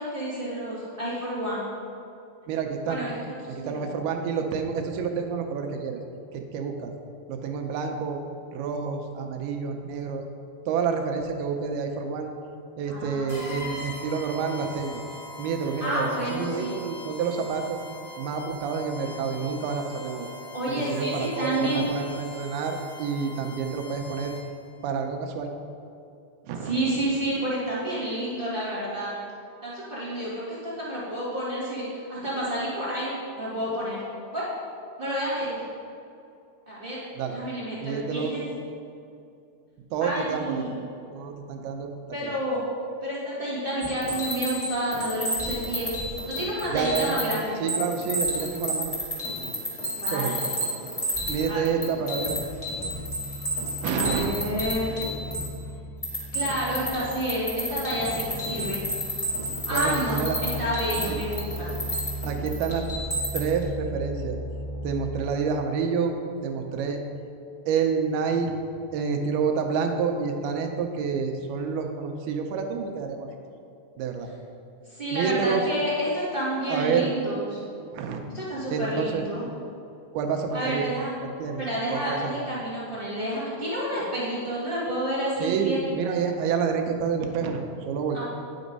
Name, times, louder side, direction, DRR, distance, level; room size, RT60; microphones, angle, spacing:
voice 1, 0.0-1.7 2.9-3.9 12.9-13.7 15.8-16.7 20.5-21.9 26.6-29.1 29.6-31.8 32.1-34.0 34.3-34.5 35.0-35.6 36.7-37.0 37.3-38.4 40.0-40.7 42.1-42.6 43.0-45.9 46.3-47.6 49.9-50.5 51.5-51.6 53.9-54.9 56.3-58.8 59.7-61.7 74.9-77.6 78.3-79.4 80.5-81.1 81.6-85.8 88.1-88.2, right 1 dB, 40° right, -9 dB, 0.7 m, -30 dB
voice 2, 2.5-3.1 3.5-6.0 6.3-6.9 7.3-8.2 8.5-10.2 10.7-12.3 12.8-15.0 15.4-17.8 18.2-20.3 20.9-24.4 24.8-25.5 26.5-27.0 37.2-37.4 37.8-38.3 39.9-40.6 41.1-41.9 42.2-42.4 46.7-47.2 47.6-48.9 50.1-50.4 51.3-52.4 53.8-54.3 59.7-60.4 61.0-61.2 62.2-62.9 63.3-64.4 64.8-66.2 66.4-67.0 67.7-68.5 68.9-73.3 74.0-74.3 75.1-75.6 76.7-77.1 77.9-78.3 78.7-79.2 80.1-80.9 81.4-81.6 81.9-82.5 85.4-88.2, right 6 dB, 80° right, 4 dB, 2.6 m, -28 dB
sound 1, 13.3-24.7, left 2 dB, 30° left, 2.4 m, -42 dB
sound 2, 43.8-47.4 47.7-55.6 56.0-63.6, equal, 15° left, 1.5 m, -31 dB
sound 3, 52.9-65.2, equal, 80° left, 2.6 m, -37 dB
9.9 x 6.1 x 5.3 m, 2.5 s
omnidirectional pair, 4.6 m